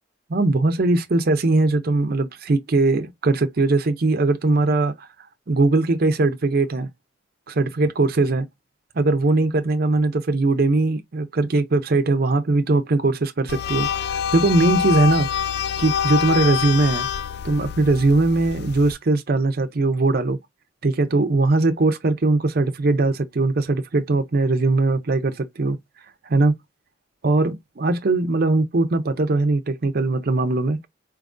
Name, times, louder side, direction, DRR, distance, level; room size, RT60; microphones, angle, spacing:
voice 1, 0.3-5.1 5.5-6.9 7.5-8.5 9.0-13.9 14.3-15.3 15.8-17.1 17.4-20.4 20.8-25.8 26.2-26.5 27.2-30.8, right 2 dB, 50° right, 0.5 m, -20 dB
sound 1, 13.5-18.9, left 8 dB, 55° left, 0.4 m, -26 dB
4.4 x 3.5 x 2.5 m
head